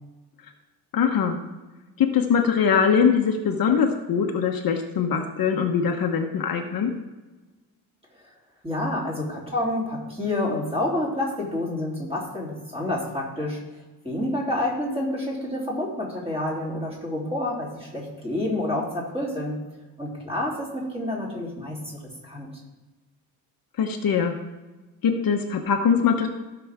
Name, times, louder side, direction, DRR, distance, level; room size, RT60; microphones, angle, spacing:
voice 1, 0.9-1.4 2.0-6.9 23.8-24.3 25.0-26.3, left 6 dB, 55° left, 4 dB, 1.0 m, -22 dB
voice 2, 8.6-13.6 14.0-19.6 20.0-22.5, left 1 dB, 15° right, -4 dB, 3.2 m, -28 dB
16.0 x 6.0 x 3.6 m, 1.2 s
cardioid pair, 130°, 41 cm